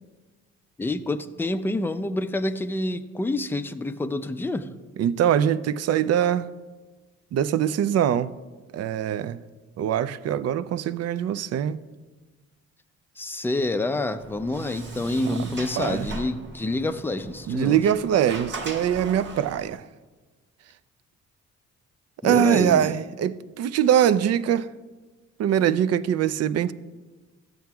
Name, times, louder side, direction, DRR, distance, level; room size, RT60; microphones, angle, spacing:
voice 1, 0.8-4.7 13.2-17.8 22.2-22.9, left 2 dB, 5° left, 0.4 m, -27 dB
voice 2, 5.0-6.5 7.3-8.3 8.7-9.4 9.8-11.8 15.3-15.5 15.7-16.1 17.5-19.9 22.2-24.7 25.4-26.7, right 9 dB, 55° right, 0.5 m, -23 dB
Sliding door, 14.2-19.8, right 2 dB, 40° right, 1.4 m, -39 dB
14.0 x 7.6 x 2.3 m
cardioid pair, 90°, 30 cm